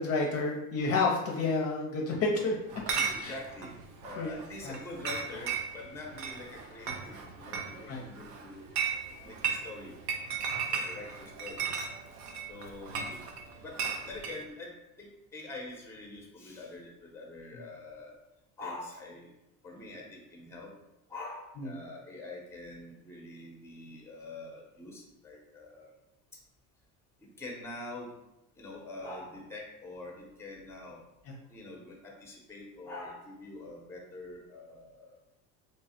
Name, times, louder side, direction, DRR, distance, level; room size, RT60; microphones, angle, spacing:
voice 1, 0.0-2.6 2.9-3.4 4.2-4.8 7.9-8.0 21.6-21.8 31.3-31.4, left 3 dB, 40° left, -1 dB, 0.6 m, -30 dB
Chatter / Chink clink, 2.7-14.4, right 6 dB, 55° right, 0.6 m, -36 dB
voice 2, 3.1-3.7 4.0-8.7 9.2-10.0 10.7-11.7 12.5-13.3 13.6-18.2 18.6-19.3 19.6-20.7 21.1-25.9 27.2-28.1 28.6-31.0 31.5-35.2, left 2 dB, 5° left, -1 dB, 0.8 m, -45 dB
3.1 x 2.3 x 4.2 m, 0.90 s
cardioid pair, 130°, 36 cm